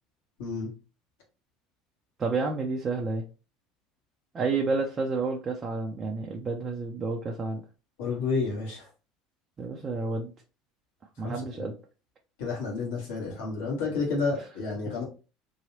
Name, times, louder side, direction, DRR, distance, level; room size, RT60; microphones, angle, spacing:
voice 1, 0.4-0.7 8.0-8.9 11.2-11.7 12.4-15.0, left 4 dB, 75° left, -2 dB, 1.8 m, -30 dB
voice 2, 2.2-3.2 4.3-7.6 9.6-10.3 11.2-11.7 14.9-15.0, right 3 dB, 35° right, 0 dB, 0.7 m, -30 dB
3.9 x 3.0 x 2.8 m, 0.33 s
hypercardioid pair, 75°, 0 cm